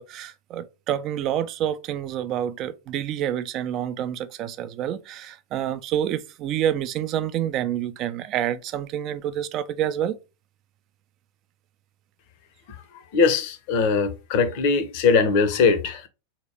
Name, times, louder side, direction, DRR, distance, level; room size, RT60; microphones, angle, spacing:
voice 1, 0.0-10.2, right 10 dB, 35° right, 0.5 m, -28 dB
voice 2, 13.1-16.1, left 5 dB, 45° left, 0.7 m, -21 dB
4.0 x 2.9 x 3.3 m
figure-of-eight pair, 90°, 0 cm